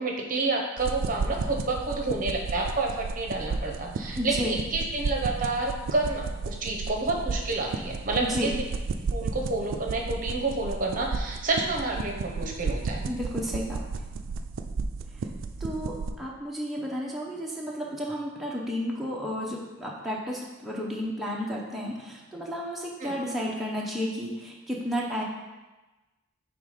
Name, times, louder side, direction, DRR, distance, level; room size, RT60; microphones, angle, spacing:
voice 1, 0.0-8.6 9.1-13.0 23.0-23.2, right 3 dB, 45° right, 0 dB, 0.7 m, -29 dB
sound 1, 0.8-16.1, right 4 dB, 80° right, 0.4 m, -33 dB
voice 2, 4.1-4.6 8.2-8.6 13.0-13.8 15.6-25.2, equal, ahead, -5 dB, 0.6 m, -32 dB
5.6 x 3.6 x 4.9 m, 1.1 s
head